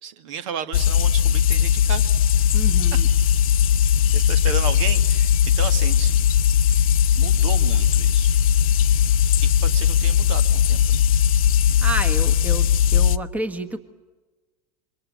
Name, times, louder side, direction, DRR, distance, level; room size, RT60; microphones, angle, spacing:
voice 1, 0.0-2.1 4.1-6.2 7.2-8.3 9.4-11.0, right 7 dB, 55° right, 11 dB, 1.9 m, -33 dB
sound 1, 0.7-13.2, left 9 dB, 60° left, 0.8 m, -18 dB
voice 2, 2.5-3.1 11.8-13.8, right 1 dB, 5° right, 11 dB, 1.4 m, -30 dB
27.0 x 25.0 x 8.4 m, 1.2 s
figure-of-eight pair, 85°, 20 cm